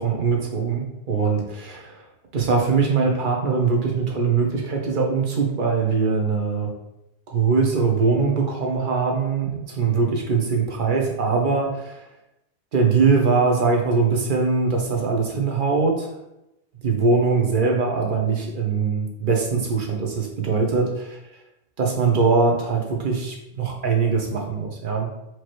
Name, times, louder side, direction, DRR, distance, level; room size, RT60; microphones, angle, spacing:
voice 1, 0.0-1.9 2.3-6.7 7.3-12.0 12.7-16.1 16.8-21.2 21.8-25.1, right 4 dB, 55° right, 1 dB, 0.9 m, -22 dB
4.5 x 3.0 x 3.0 m, 0.87 s
omnidirectional pair, 1.1 m